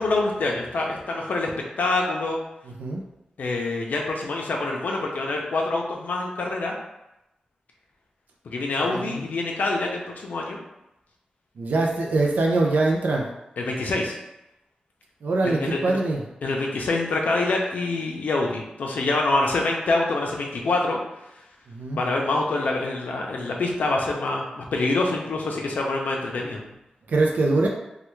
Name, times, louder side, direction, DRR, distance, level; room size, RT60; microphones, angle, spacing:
voice 1, 0.0-1.5 1.8-2.4 3.4-6.8 8.4-10.6 13.6-14.1 15.4-16.0 16.4-21.0 21.9-26.6, left 2 dB, 80° left, 0 dB, 0.5 m, -26 dB
voice 2, 2.7-3.0 8.8-9.2 11.6-13.2 15.2-16.2 21.7-22.0 27.1-27.7, right 2 dB, 85° right, 0 dB, 0.4 m, -23 dB
3.2 x 2.2 x 3.1 m, 0.90 s
wide cardioid pair, 150°, 3 cm